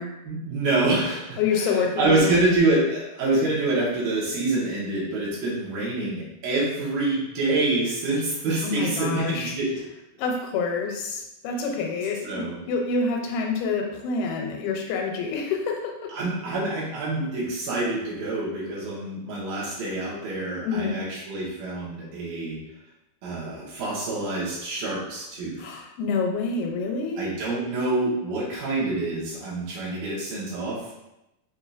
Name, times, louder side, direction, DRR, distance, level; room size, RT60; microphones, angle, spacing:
voice 1, 0.2-9.8 12.2-12.6 16.1-22.6 23.2-25.6 27.2-31.0, right 2 dB, 70° right, -6 dB, 2.8 m, -26 dB
voice 2, 1.4-2.4 8.6-9.5 10.2-16.1 20.6-21.1 25.6-27.3, left 4 dB, 85° left, 2 dB, 2.6 m, -27 dB
6.5 x 2.7 x 2.4 m, 0.91 s
omnidirectional pair, 4.3 m